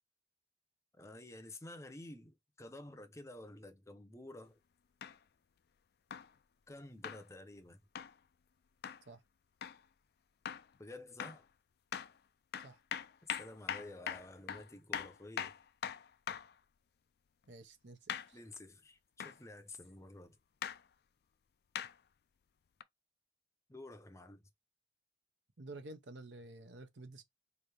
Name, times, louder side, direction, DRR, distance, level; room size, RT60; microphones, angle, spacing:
voice 1, 1.0-4.6 6.7-7.8 10.8-11.4 13.3-15.5 18.3-20.4 23.7-24.5, left 2 dB, 15° left, 0.6 m, -51 dB
sound 1, 5.0-5.2 6.1-6.3 7.0-7.2 8.0-8.1 8.8-9.0 9.6-9.8 10.5-10.7 11.2-11.4 11.9-12.1 12.5-16.5 18.1-18.3 19.2-19.4 20.6-20.8 21.8-21.9 22.8-22.9, left 8 dB, 55° left, 0.4 m, -41 dB
voice 2, 17.5-18.4 25.6-27.2, right 2 dB, 70° right, 0.9 m, -51 dB
4.6 x 2.7 x 3.3 m
head